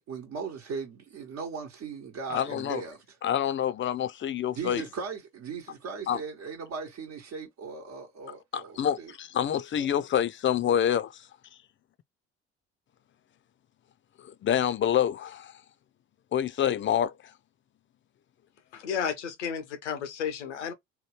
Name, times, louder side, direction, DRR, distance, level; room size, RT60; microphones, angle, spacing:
voice 1, 0.0-3.2 4.5-9.1 9.8-9.9, right 5 dB, 50° right, 1.0 m, -38 dB
voice 2, 2.3-2.8 3.2-4.8 6.1-6.2 8.5-11.2 14.4-15.5 16.3-17.1, left 9 dB, 35° left, 0.4 m, -27 dB
voice 3, 18.7-20.7, left 7 dB, 90° left, 0.6 m, -32 dB
3.0 x 2.2 x 3.1 m
hypercardioid pair, 50°, 34 cm